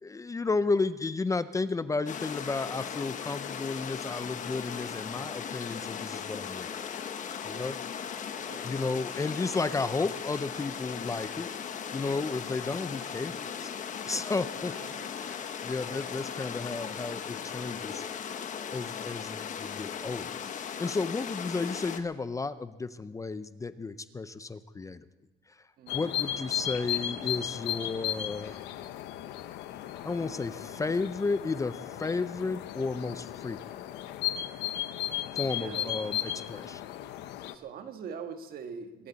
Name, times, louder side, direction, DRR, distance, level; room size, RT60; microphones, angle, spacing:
voice 1, 0.0-6.7 7.4-7.8 8.6-11.5 11.9-13.7 14.1-14.7 15.3-18.0 18.7-25.0 25.9-28.7 30.0-33.6 35.3-36.8, left 3 dB, 20° left, 13 dB, 0.5 m, -33 dB
sound 1, 2.1-22.0, left 7 dB, 50° left, 1.2 m, -38 dB
voice 2, 7.4-7.7 8.4-8.7 14.7-15.4 15.8-16.1 25.8-26.1 35.4-35.9 37.5-39.1, right 6 dB, 60° right, 7 dB, 1.5 m, -44 dB
sound 2, 25.9-37.5, left 11 dB, 85° left, 0.8 m, -35 dB
23.5 x 13.0 x 4.1 m, 1.1 s
cardioid pair, 110°, 17 cm